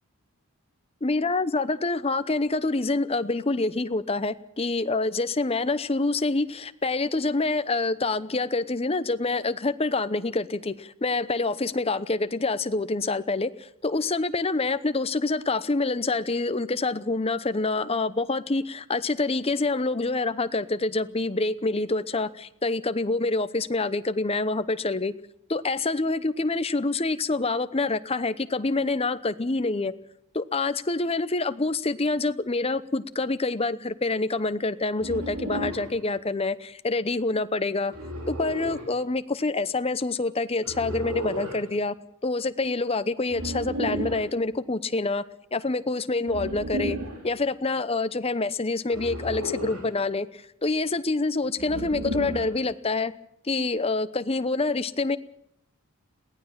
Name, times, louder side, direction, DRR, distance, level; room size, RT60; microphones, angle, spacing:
voice 1, 1.0-25.1 25.5-29.9 30.3-37.9 38.3-41.9 42.2-45.2 45.5-47.0 47.2-53.1 53.4-55.2, left 3 dB, 25° left, 12 dB, 0.8 m, -26 dB
sound 1, 35.0-35.9 37.9-38.9 40.6-41.6 43.3-44.3 46.2-47.2 48.9-49.9 51.6-52.6, equal, 80° right, 4.1 m, -33 dB
22.0 x 17.0 x 7.3 m, 0.76 s
head